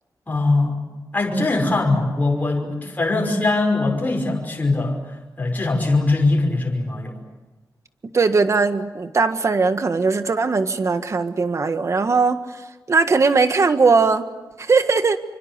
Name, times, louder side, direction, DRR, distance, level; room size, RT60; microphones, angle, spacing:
voice 1, 0.3-0.8 1.1-5.0 5.4-7.1, left 2 dB, 25° left, 0 dB, 5.7 m, -21 dB
voice 2, 8.1-12.4 12.9-14.3 14.6-15.2, right 4 dB, 45° right, 9 dB, 1.6 m, -19 dB
27.5 x 25.0 x 8.2 m, 1.1 s
wide cardioid pair, 160°, 7 cm